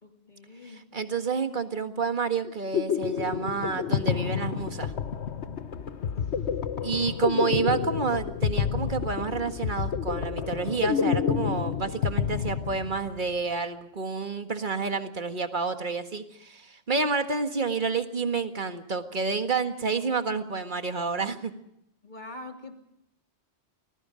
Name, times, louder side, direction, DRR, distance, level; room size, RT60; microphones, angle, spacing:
voice 1, 0.0-0.9 22.0-22.7, left 2 dB, 40° left, 4 dB, 3.0 m, -44 dB
voice 2, 0.6-4.9 6.8-21.5, right 5 dB, 45° right, 7 dB, 1.8 m, -29 dB
sound 1, 2.4-13.2, left 7 dB, 75° left, 1.3 m, -29 dB
28.5 x 20.0 x 5.1 m, 0.79 s
omnidirectional pair, 1.1 m